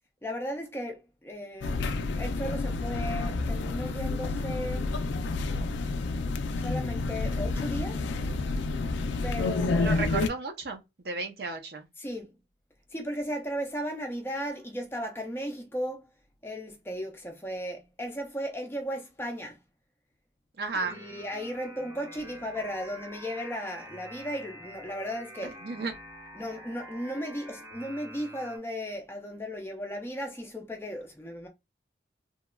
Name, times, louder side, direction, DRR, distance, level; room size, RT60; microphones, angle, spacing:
voice 1, 0.2-5.0 6.6-8.0 9.2-10.1 12.0-12.4 12.9-16.1 16.4-19.6 20.9-25.6 26.4-31.5, equal, 15° left, 0.4 m, -36 dB
sound 1, 1.6-10.3, left 3 dB, 85° left, 0.3 m, -29 dB
voice 2, 9.8-11.9 20.6-21.0 25.4-25.9, right 3 dB, 60° right, 0.5 m, -33 dB
sound 2, 20.8-28.6, equal, 15° right, 0.8 m, -47 dB
2.8 x 2.3 x 2.2 m
head